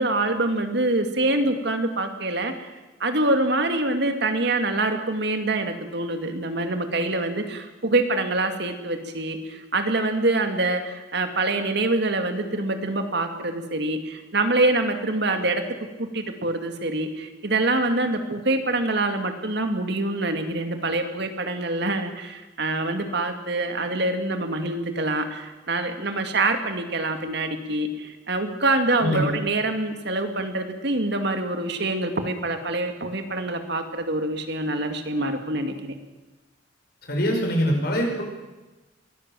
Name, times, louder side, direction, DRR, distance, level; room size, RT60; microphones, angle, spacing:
voice 1, 0.0-2.7 3.0-15.6 16.0-35.9, right 2 dB, 60° right, 6 dB, 2.3 m, -25 dB
voice 2, 37.1-38.2, equal, 55° left, 1 dB, 6.1 m, -23 dB
23.0 x 17.5 x 7.7 m, 1.1 s
head